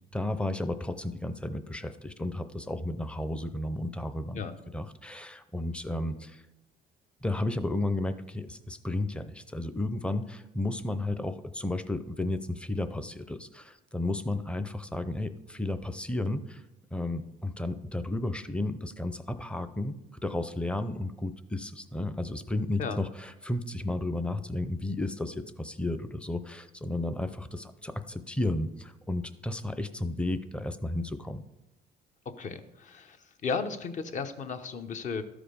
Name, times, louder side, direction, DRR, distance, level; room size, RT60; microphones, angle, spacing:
voice 1, 0.1-6.4 7.2-16.6 16.9-19.9 20.2-31.4, left 2 dB, 5° left, 11 dB, 0.6 m, -33 dB
voice 2, 32.4-35.2, left 5 dB, 45° left, 8 dB, 0.9 m, -34 dB
13.0 x 5.0 x 5.1 m, 0.94 s
cardioid pair, 110°, 17 cm